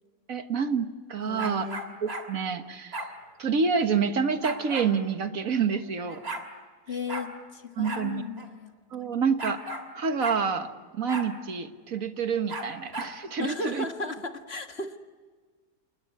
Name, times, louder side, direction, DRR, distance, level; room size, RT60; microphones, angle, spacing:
voice 1, 0.3-1.7 2.0-3.0 3.4-6.2 7.8-8.2 8.9-9.6 9.9-13.8, right 5 dB, 60° right, 8 dB, 1.8 m, -28 dB
voice 2, 1.2-1.9 6.9-8.7 13.4-15.0, left 3 dB, 40° left, 6 dB, 1.9 m, -35 dB
sound 1, 1.4-2.3 2.9-3.1 4.4-4.9 5.8-5.9 6.1-6.5 7.1-7.3 7.8-8.1 8.4-8.5 9.4-9.9 10.2-10.4 11.1-11.3 12.5-13.1, right 1 dB, 40° right, 3.0 m, -35 dB
29.0 x 19.5 x 9.8 m, 1.5 s
omnidirectional pair, 1.7 m